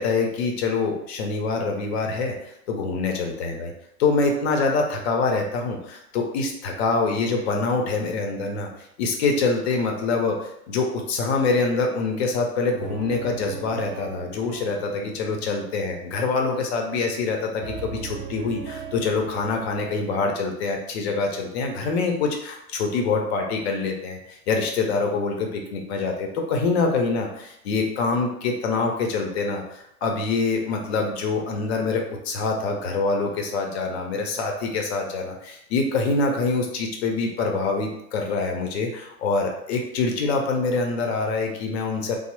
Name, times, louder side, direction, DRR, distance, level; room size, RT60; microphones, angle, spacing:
voice 1, 0.0-3.7 4.0-8.7 9.0-42.2, left 4 dB, 45° left, 2 dB, 0.6 m, -25 dB
sound 1, 12.8-17.3 17.6-20.0, right 5 dB, 40° right, 0.4 m, -39 dB
2.9 x 2.0 x 3.0 m, 0.78 s
figure-of-eight pair, 100°, 45 cm